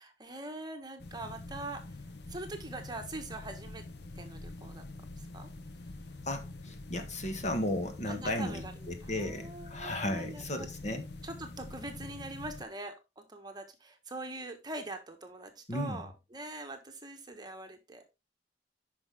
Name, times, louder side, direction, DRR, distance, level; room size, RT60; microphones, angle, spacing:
voice 1, 0.0-1.8 2.3-3.8 4.2-4.8 5.3-5.5 8.1-8.7 9.0-10.7 11.2-18.0, right 2 dB, 25° right, 1.4 m, -43 dB
sound 1, 1.0-12.6, left 2 dB, 65° left, 1.0 m, -46 dB
voice 2, 6.2-11.1 15.7-16.0, left 1 dB, 40° left, 1.5 m, -35 dB
9.9 x 5.7 x 3.5 m
head